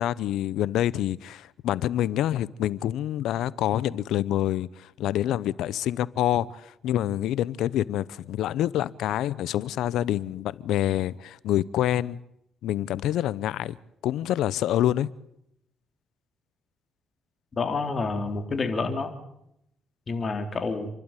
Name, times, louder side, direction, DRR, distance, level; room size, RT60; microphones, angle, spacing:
voice 1, 0.0-12.2 12.6-13.8 14.0-15.1, left 12 dB, 85° left, 0.7 m, -27 dB
voice 2, 17.6-19.1 20.1-20.9, left 3 dB, 40° left, 3.5 m, -28 dB
28.5 x 12.0 x 9.2 m
cardioid pair, 90°, 0 cm